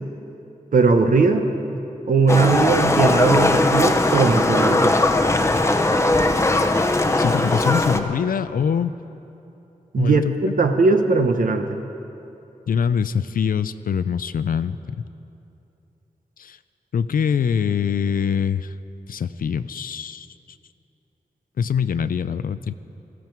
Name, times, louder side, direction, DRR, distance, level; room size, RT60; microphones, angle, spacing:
voice 1, 0.7-1.5 2.0-5.0 9.9-10.2 10.6-11.8, right 4 dB, 70° right, 5 dB, 1.0 m, -19 dB
Livestock farm animals working animals, 2.3-8.0, left 2 dB, 20° left, 0.8 m, -19 dB
voice 2, 7.2-8.9 10.0-10.6 12.7-15.0 16.4-16.6 16.9-18.7 19.1-20.3 21.6-22.7, left 7 dB, 80° left, 13 dB, 0.5 m, -23 dB
20.0 x 14.5 x 4.6 m, 2.9 s
wide cardioid pair, 125°, 14 cm